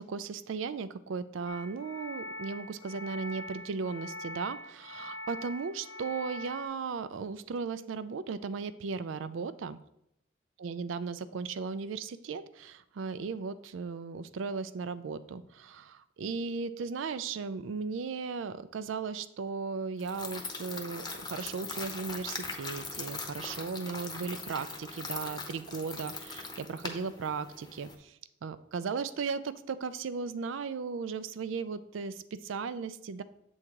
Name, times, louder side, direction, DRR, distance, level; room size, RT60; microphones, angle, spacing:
voice 1, 0.0-9.8 10.6-28.2 28.4-33.2, right 5 dB, 90° right, 13 dB, 0.4 m, -36 dB
sound 1, 1.5-6.6, left 1 dB, 85° left, 1.0 m, -43 dB
sound 2, 20.0-27.9, left 3 dB, 20° left, 0.8 m, -41 dB
7.8 x 3.6 x 4.6 m, 0.80 s
head